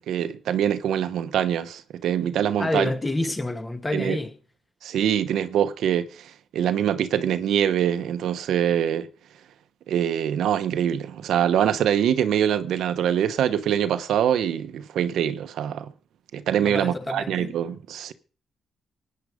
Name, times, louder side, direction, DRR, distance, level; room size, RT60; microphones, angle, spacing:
voice 1, 0.1-2.9 3.9-4.2 4.8-9.1 9.9-15.9 16.3-18.1, right 9 dB, 80° right, 1.1 m, -24 dB
voice 2, 2.6-4.3 16.6-17.5, left 2 dB, 20° left, 2.2 m, -28 dB
17.5 x 9.8 x 5.1 m
cardioid pair, 90°, 0 cm